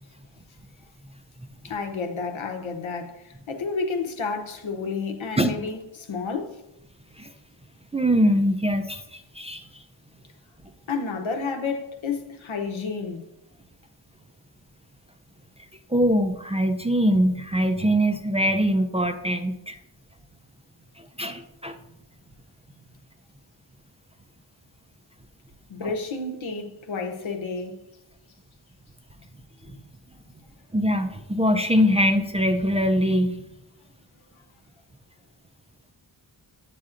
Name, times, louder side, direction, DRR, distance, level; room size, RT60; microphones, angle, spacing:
voice 1, 1.6-6.6 10.9-13.2 25.7-27.8, left 4 dB, 85° left, 0.9 m, -30 dB
voice 2, 7.9-9.8 15.9-19.8 21.0-21.8 25.8-25.9 29.7-29.8 30.7-33.4, equal, 15° right, 0.4 m, -23 dB
8.3 x 7.5 x 2.5 m
wide cardioid pair, 105°, 46 cm